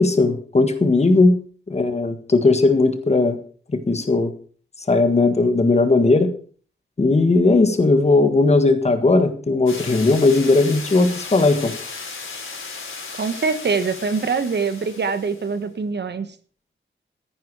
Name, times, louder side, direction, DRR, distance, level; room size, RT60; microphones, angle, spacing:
voice 1, 0.0-1.4 1.7-3.4 3.7-4.3 4.9-6.3 7.0-11.7, left 3 dB, 30° left, 8 dB, 1.6 m, -17 dB
sound 1, 9.7-15.5, left 4 dB, 85° left, 4.4 m, -35 dB
voice 2, 13.2-16.3, right 5 dB, 55° right, 11 dB, 1.2 m, -24 dB
14.0 x 10.0 x 4.8 m, 0.43 s
wide cardioid pair, 170°, 21 cm